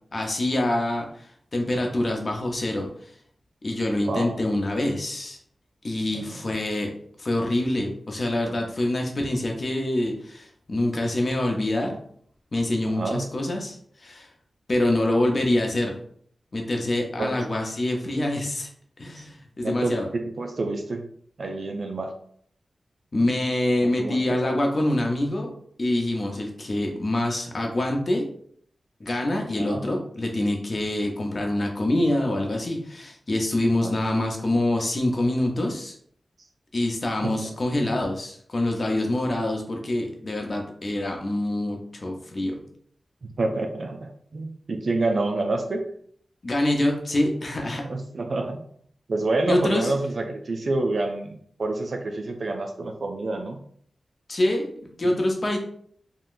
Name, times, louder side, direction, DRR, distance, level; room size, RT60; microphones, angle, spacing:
voice 1, 0.1-3.1 3.6-5.4 5.8-6.9 7.2-12.0 12.5-14.3 14.7-15.9 16.5-18.7 19.0-20.1 23.1-25.5 25.8-28.3 29.0-36.0 36.7-42.6 46.4-47.9 49.5-49.9 54.3-55.6, left 1 dB, 50° left, 2 dB, 0.7 m, -25 dB
voice 2, 4.1-4.4 6.1-6.2 12.9-13.3 17.2-17.3 19.6-21.0 21.4-22.1 23.8-24.2 29.6-29.8 33.8-34.0 37.4-37.5 43.2-45.9 47.8-48.6 49.1-53.6 55.0-55.1, right 2 dB, 65° right, 4 dB, 0.4 m, -28 dB
3.7 x 2.2 x 2.5 m, 0.62 s
cardioid pair, 60°, 0 cm